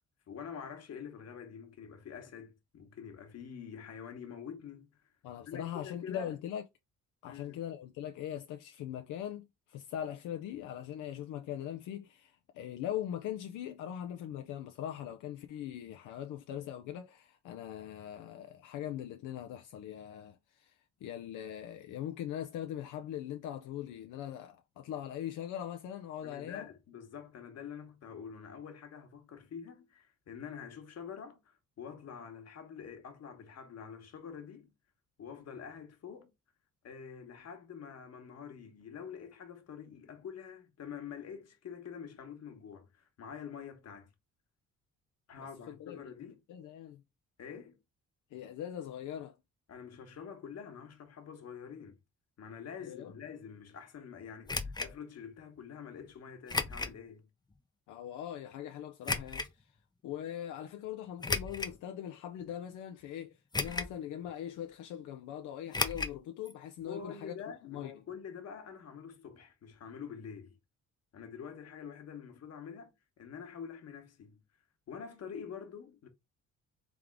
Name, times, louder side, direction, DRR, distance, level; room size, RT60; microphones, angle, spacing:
voice 1, 0.3-5.0 5.5-6.4 7.3-7.6 26.2-34.7 35.2-36.3 36.8-44.1 45.3-46.4 47.4-47.8 49.7-52.0 52.4-57.3 66.9-70.6 71.1-72.9 73.2-74.4 74.9-76.1, left 7 dB, 55° left, 1.3 m, -46 dB
voice 2, 5.2-6.6 7.2-26.7 45.4-47.0 48.3-49.4 52.8-53.1 57.9-59.8 60.0-67.3 67.6-67.9, left 10 dB, 85° left, 0.6 m, -41 dB
sound 1, 54.5-54.9 56.5-57.0 57.5-57.6 59.0-59.5 61.2-61.8 62.4-62.5 63.5-64.0 64.3-64.4 65.7-66.2 66.5-66.6 66.8-66.9, left 3 dB, 15° left, 0.5 m, -34 dB
3.6 x 3.5 x 3.6 m
cardioid pair, 90°, 30 cm